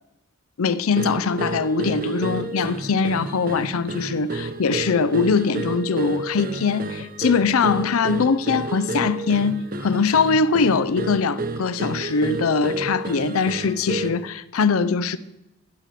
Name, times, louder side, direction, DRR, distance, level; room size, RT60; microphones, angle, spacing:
voice 1, 0.6-15.2, left 5 dB, 80° left, 0.5 m, -22 dB
sound 1, 1.0-14.3, right 2 dB, 40° right, 0.9 m, -31 dB
16.5 x 6.7 x 7.5 m
head